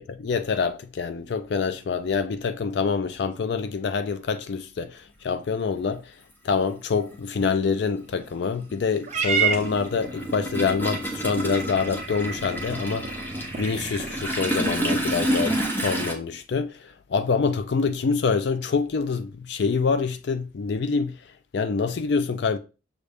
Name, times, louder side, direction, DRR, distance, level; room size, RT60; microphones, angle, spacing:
voice 1, 0.0-6.0 6.4-13.2 13.6-21.2 21.5-22.6, left 5 dB, 65° left, 0.4 m, -26 dB
Toilet flush, 5.7-5.8 7.0-7.2 7.5-16.1, right 1 dB, 10° left, 0.7 m, -29 dB
Purr / Meow, 9.1-15.6, right 6 dB, 35° right, 0.6 m, -32 dB
6.3 x 2.5 x 3.4 m
head